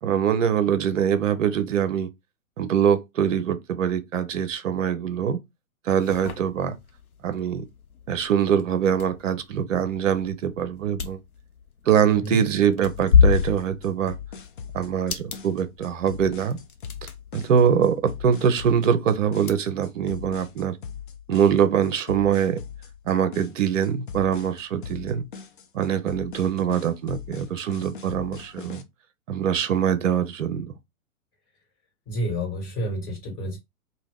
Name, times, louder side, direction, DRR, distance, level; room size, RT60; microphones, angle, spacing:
voice 1, 0.0-2.1 2.6-5.4 5.8-6.8 7.2-7.6 8.1-11.2 11.9-14.1 14.7-16.6 17.3-20.8 21.3-22.6 23.1-25.3 25.7-28.8 29.3-30.7, right 8 dB, 60° right, 0.6 m, -23 dB
sound 1, 6.0-19.5, left 6 dB, 85° left, 0.7 m, -29 dB
voice 2, 12.1-12.4 32.1-33.6, equal, 20° left, 1.4 m, -29 dB
sound 2, 12.8-28.8, left 7 dB, 40° left, 0.4 m, -40 dB
2.9 x 2.2 x 3.3 m
figure-of-eight pair, 120°, 43 cm